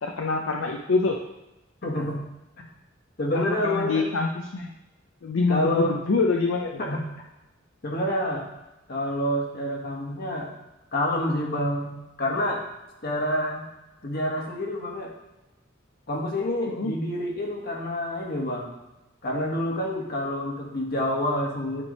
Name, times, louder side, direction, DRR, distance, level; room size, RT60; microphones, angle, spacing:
voice 1, 0.0-1.2 3.3-4.7 5.2-6.8 16.7-16.9, left 4 dB, 75° left, 2 dB, 0.6 m, -25 dB
voice 2, 1.8-2.2 3.2-4.0 5.5-5.9 6.8-7.0 7.8-8.5 8.9-10.5 10.9-12.6 13.0-13.6 14.0-15.1 16.1-18.7 19.2-21.8, left 1 dB, 50° left, -1 dB, 1.6 m, -27 dB
9.8 x 3.4 x 5.3 m, 0.98 s
head